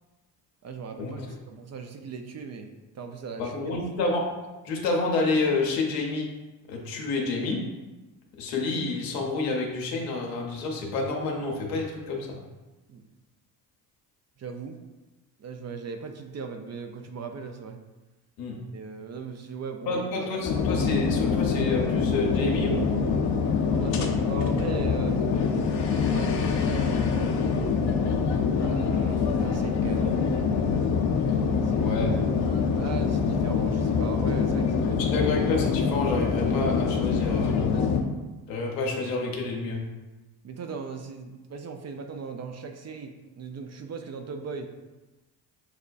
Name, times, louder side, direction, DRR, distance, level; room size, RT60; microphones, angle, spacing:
voice 1, 0.6-1.2 1.5-2.7 2.9-3.6 12.9-13.0 14.4-14.8 15.4-17.8 18.7-20.1 23.7-25.3 25.9-27.3 28.5-30.1 31.6-32.0 32.8-35.2 40.4-44.7, right 5 dB, 35° right, 5 dB, 0.5 m, -38 dB
voice 2, 3.4-4.3 4.6-6.3 6.7-7.6 8.4-12.4 18.4-18.6 19.9-23.1 24.0-24.1 31.8-32.1 35.1-37.6 38.5-39.8, left 3 dB, 85° left, 0 dB, 0.9 m, -29 dB
sound 1, 20.4-38.0, left 5 dB, 55° left, 0.7 m, -25 dB
6.5 x 2.2 x 2.4 m, 1.1 s
hypercardioid pair, 50°, 49 cm